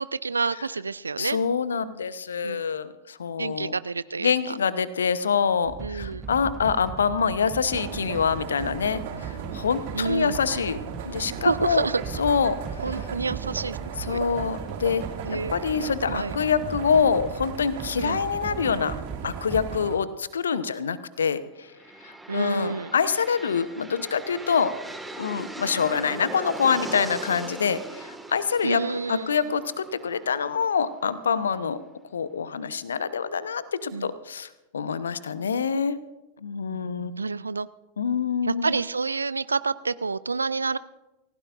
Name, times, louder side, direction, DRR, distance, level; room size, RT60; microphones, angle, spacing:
voice 1, 0.0-1.4 2.4-2.6 3.4-4.6 5.8-6.3 9.1-9.3 9.9-10.4 11.4-12.0 12.8-14.2 15.2-16.4 18.0-18.2 22.3-22.9 28.6-29.6 33.9-34.1 36.7-37.7 38.4-40.8, right 4 dB, 75° right, 17 dB, 0.4 m, -29 dB
voice 2, 1.2-3.7 4.2-10.8 11.1-11.8 12.2-12.6 14.1-15.0 15.3-18.9 19.2-21.7 22.0-24.7 25.1-31.8 32.1-36.0 36.4-37.2 38.0-38.7, left 6 dB, 70° left, 15 dB, 0.9 m, -26 dB
sound 1, 5.6-19.8, right 6 dB, 20° right, 0.6 m, -39 dB
sound 2, 7.7-20.0, right 7 dB, 55° right, 2.4 m, -37 dB
sound 3, 21.7-31.5, right 2 dB, 5° right, 1.8 m, -40 dB
29.0 x 16.0 x 2.6 m, 1.0 s
figure-of-eight pair, 90°, 0 cm